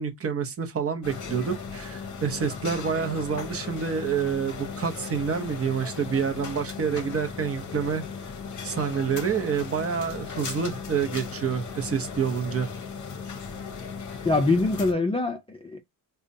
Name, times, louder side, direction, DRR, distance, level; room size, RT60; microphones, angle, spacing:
voice 1, 0.0-8.0 8.6-12.7, right 6 dB, 35° right, 0.7 m, -28 dB
sound 1, 1.0-14.9, left 5 dB, 45° left, 0.7 m, -37 dB
voice 2, 14.3-15.8, left 3 dB, 15° left, 0.3 m, -24 dB
4.9 x 2.2 x 2.6 m
cardioid pair, 130°, 41 cm